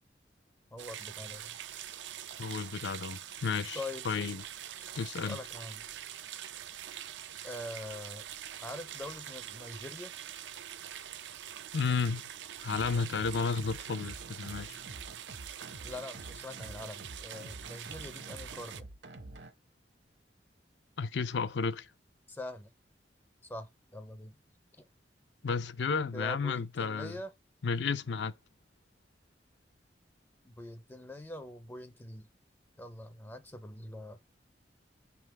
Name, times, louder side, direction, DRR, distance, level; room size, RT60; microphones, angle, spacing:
voice 1, 0.7-1.6 3.7-4.2 4.7-5.8 7.4-8.3 8.6-10.1 15.8-18.9 22.3-22.7 23.4-24.4 26.1-27.3 30.4-32.3 32.8-34.2, left 1 dB, 10° left, 0.4 m, -44 dB
sound 1, 0.8-18.8, right 10 dB, 85° right, 0.5 m, -44 dB
voice 2, 2.4-4.4 4.9-5.4 11.7-12.2 12.6-14.8 21.0-21.9 25.4-27.2 27.6-28.3, left 5 dB, 75° left, 0.5 m, -32 dB
sound 2, 12.7-19.5, right 2 dB, 70° right, 1.0 m, -48 dB
5.9 x 3.6 x 4.5 m
head